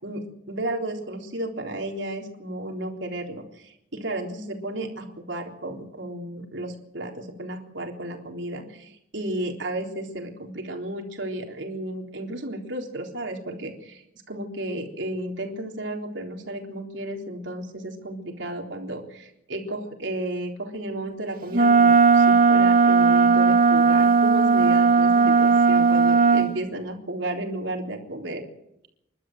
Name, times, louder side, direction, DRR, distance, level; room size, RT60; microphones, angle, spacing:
voice 1, 0.0-14.0 14.3-28.4, right 1 dB, 75° right, 2 dB, 3.8 m, -33 dB
Wind instrument woodwind instrument, 21.5-26.5, right 5 dB, 50° right, 2.5 m, -17 dB
29.5 x 12.5 x 7.9 m, 0.82 s
head